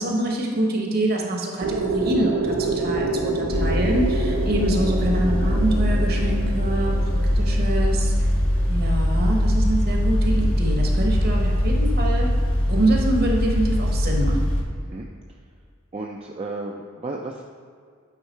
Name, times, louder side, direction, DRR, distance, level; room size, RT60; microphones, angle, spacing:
voice 1, 0.0-6.9 7.4-8.1 8.7-12.3 12.7-14.5, right 1 dB, 50° right, 0 dB, 1.1 m, -25 dB
sound 1, 1.6-9.4, right 3 dB, 85° right, 0.7 m, -28 dB
sound 2, 3.5-14.6, equal, 80° left, 1.1 m, -22 dB
voice 2, 15.9-17.4, right 2 dB, 30° right, 0 dB, 0.4 m, -33 dB
8.8 x 3.6 x 4.4 m, 2.1 s
head